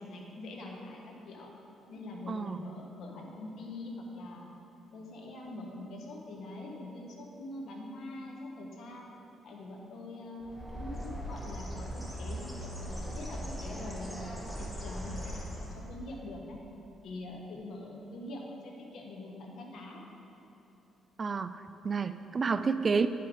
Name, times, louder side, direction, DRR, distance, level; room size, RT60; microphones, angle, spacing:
voice 1, 0.0-1.5 1.9-4.5 4.9-9.1 9.4-16.6 17.0-20.0, left 1 dB, 70° left, 0 dB, 1.4 m, -44 dB
voice 2, 2.3-2.6 21.2-23.1, right 5 dB, 35° right, 12 dB, 0.3 m, -30 dB
Bird, 10.4-16.0, equal, ahead, 1.5 m, -39 dB
10.0 x 5.7 x 5.1 m, 3.0 s
cardioid pair, 90°, 0 cm